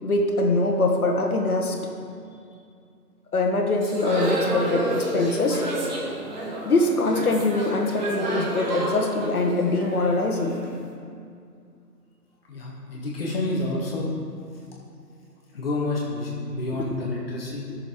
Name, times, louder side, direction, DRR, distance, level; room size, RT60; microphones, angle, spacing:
voice 1, 0.0-1.8 3.3-5.6 6.6-10.6 17.7-17.8, left 2 dB, 60° left, 2 dB, 1.6 m, -23 dB
sound 1, 3.8-10.8, right 2 dB, 30° right, 1.3 m, -30 dB
voice 2, 12.5-14.1 15.5-17.7, left 2 dB, 35° left, -4 dB, 1.7 m, -29 dB
14.5 x 6.7 x 3.8 m, 2.4 s
figure-of-eight pair, 145°, 48 cm